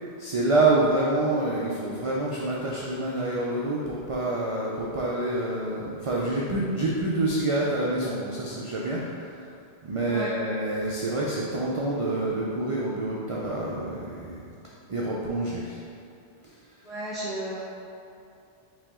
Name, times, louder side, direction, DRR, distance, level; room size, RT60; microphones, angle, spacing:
voice 1, 0.2-9.5 9.8-14.5 14.9-15.8, right 2 dB, 55° right, -5 dB, 0.3 m, -27 dB
voice 2, 16.8-17.6, right 1 dB, ahead, -12 dB, 0.5 m, -33 dB
5.1 x 2.9 x 3.5 m, 2.6 s
omnidirectional pair, 1.1 m